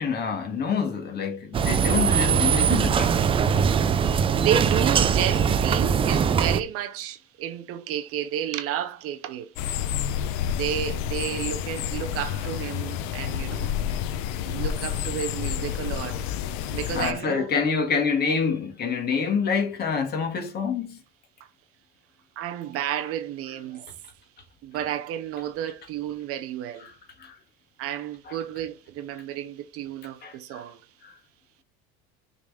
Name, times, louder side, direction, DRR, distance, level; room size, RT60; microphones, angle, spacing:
voice 1, 0.0-3.1 17.0-21.0 27.2-27.3 28.3-28.4 30.2-30.6 31.0-31.1, left 5 dB, 30° left, 1.8 m, -27 dB
sound 1, 1.5-6.6, right 7 dB, 20° right, 0.4 m, -21 dB
voice 2, 4.4-9.5 10.6-13.7 14.5-16.3 16.7-17.5 22.4-23.9 24.6-26.9 27.8-30.8, right 10 dB, 50° right, 0.7 m, -31 dB
sound 2, 9.6-17.1, left 9 dB, 75° left, 0.8 m, -29 dB
6.4 x 4.0 x 4.8 m
cardioid pair, 150°, 30 cm